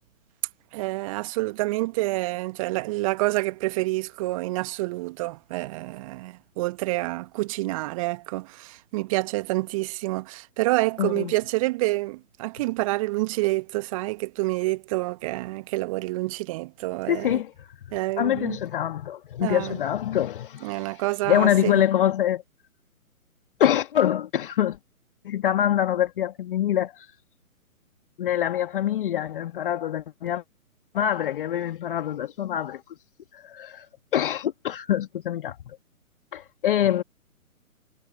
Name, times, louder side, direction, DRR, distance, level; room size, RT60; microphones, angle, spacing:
voice 1, 0.7-17.4 17.9-18.6 19.4-19.8 20.6-21.8, right 20 dB, 25° right, 1.5 m, -28 dB
voice 2, 11.0-11.3 17.1-17.8 18.2-22.4 23.6-24.8 25.2-27.1 28.2-30.4 30.9-32.8 33.3-33.9 34.1-35.8 36.3-37.0, left 11 dB, 35° left, 1.8 m, -25 dB
figure-of-eight pair, 135°, 43 cm